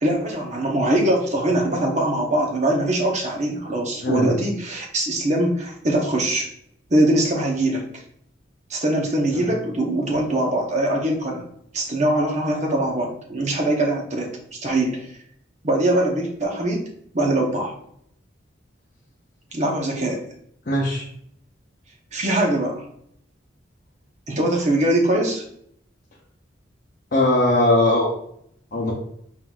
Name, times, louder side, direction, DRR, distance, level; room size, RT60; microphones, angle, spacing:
voice 1, 0.0-6.5 6.9-7.8 8.7-11.4 11.7-14.3 14.6-15.1 15.6-16.8 17.1-17.8 19.5-20.2 22.1-22.8 24.3-25.4, right 1 dB, 35° right, 0 dB, 0.8 m, -22 dB
voice 2, 20.7-21.0 27.1-28.1 28.7-28.9, left 1 dB, 45° left, -5 dB, 0.7 m, -19 dB
4.5 x 3.8 x 2.3 m, 0.69 s
head